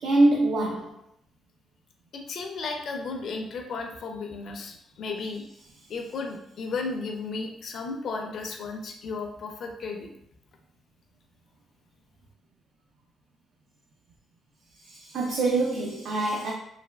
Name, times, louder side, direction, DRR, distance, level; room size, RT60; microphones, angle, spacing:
voice 1, 0.0-0.9 14.9-16.5, right 2 dB, 70° right, -1 dB, 0.4 m, -24 dB
voice 2, 2.1-5.4 5.9-10.1, left 4 dB, 65° left, 3 dB, 0.4 m, -34 dB
3.2 x 2.3 x 2.2 m, 0.73 s
cardioid pair, 90°, 0 cm